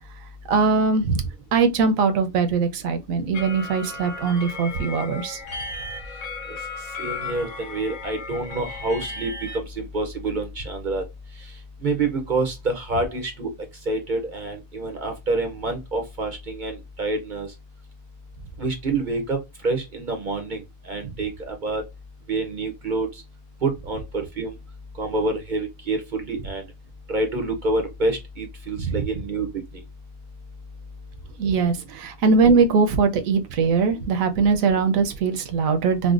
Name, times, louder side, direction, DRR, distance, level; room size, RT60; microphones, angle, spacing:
voice 1, 0.5-1.2 1.5-5.4 28.8-28.9 31.4-36.1, right 4 dB, 75° right, 1.0 m, -21 dB
sound 1, 3.3-9.6, left 3 dB, 65° left, 1.2 m, -35 dB
voice 2, 7.0-11.0 11.8-13.5 13.9-17.5 18.6-19.4 19.6-20.6 20.9-21.8 22.3-23.1 23.6-24.5 25.0-26.6 27.1-29.5, right 2 dB, 50° right, 0.6 m, -27 dB
4.8 x 2.1 x 2.4 m
omnidirectional pair, 1.4 m